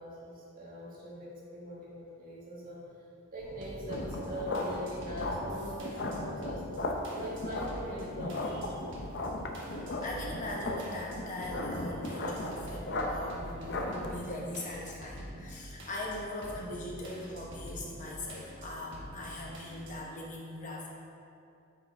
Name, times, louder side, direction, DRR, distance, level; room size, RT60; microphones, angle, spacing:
voice 1, 0.0-2.8 3.3-6.7 7.1-8.8, equal, 40° right, -6 dB, 1.6 m, -42 dB
sound 1, 3.4-20.0, equal, 55° right, 1.2 m, -46 dB
sound 2, 3.9-14.1, left 1 dB, 50° left, 0.6 m, -36 dB
voice 2, 9.7-20.9, left 1 dB, 35° left, -3 dB, 1.0 m, -40 dB
9.2 x 4.8 x 3.4 m, 2.6 s
head